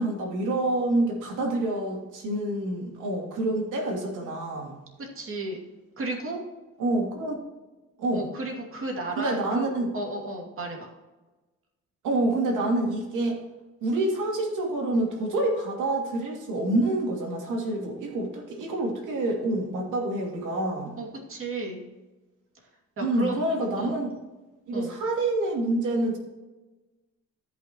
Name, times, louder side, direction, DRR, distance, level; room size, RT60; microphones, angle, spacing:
voice 1, 0.0-4.8 6.8-7.3 8.0-8.3 9.2-9.9 12.0-13.4 13.8-20.9 23.0-24.1 24.7-26.2, right 2 dB, 85° right, 0 dB, 2.6 m, -27 dB
voice 2, 5.0-5.6 6.0-6.4 8.1-10.9 21.0-21.8 23.0-23.4 23.8-23.9 24.7-24.9, right 2 dB, 45° right, 0 dB, 2.5 m, -33 dB
14.0 x 5.8 x 3.0 m, 1.1 s
cardioid pair, 90°, 30 cm